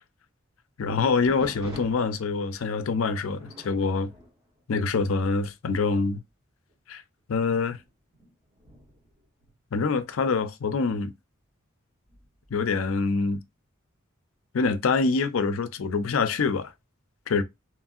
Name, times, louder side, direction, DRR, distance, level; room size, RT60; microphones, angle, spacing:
voice 1, 0.8-4.1 4.7-6.2 6.9-7.0 7.3-7.8 9.7-11.1 12.5-13.4 14.5-16.7 17.3-17.4, left 4 dB, 80° left, 0.5 m, -25 dB
sound 1, 1.3-5.4 5.7-6.1 6.7-6.8 7.5-10.2 12.1-12.6, equal, 25° right, 1.6 m, -48 dB
3.0 x 2.6 x 2.4 m
head